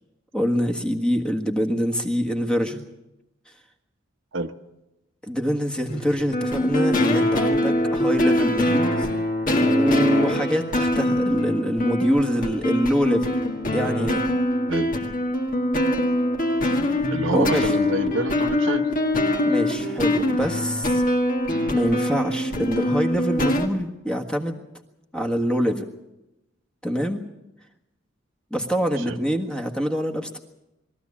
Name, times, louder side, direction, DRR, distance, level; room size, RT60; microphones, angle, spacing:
voice 1, 0.3-2.8 5.2-9.1 9.6-13.3 13.7-14.3 17.3-17.7 19.4-21.0 21.7-24.6 25.1-25.9 26.8-27.2 28.5-30.4, equal, 5° left, 4 dB, 1.6 m, -24 dB
sound 1, 5.9-23.7, left 1 dB, 45° left, 1.9 m, -23 dB
voice 2, 17.1-18.9 29.0-29.2, right 2 dB, 70° right, 6 dB, 1.1 m, -27 dB
22.0 x 14.0 x 8.5 m, 0.96 s
head